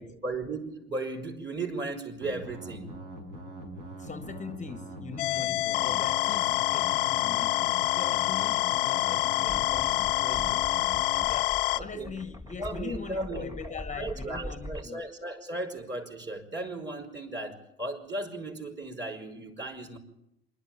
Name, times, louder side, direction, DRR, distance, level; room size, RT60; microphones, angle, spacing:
voice 1, 0.2-2.9 11.8-12.1 12.6-20.0, right 2 dB, 35° right, 5.2 m, -36 dB
sound 1, 2.2-11.2, right 1 dB, 70° right, 6.0 m, -42 dB
voice 2, 4.0-10.7 11.3-15.0, left 6 dB, 25° left, 0.9 m, -41 dB
sound 2, 5.2-11.8, left 18 dB, 80° left, 0.6 m, -27 dB
sound 3, 9.5-14.9, equal, 10° right, 1.6 m, -42 dB
25.5 x 12.0 x 9.1 m
hypercardioid pair, 70°, 30 cm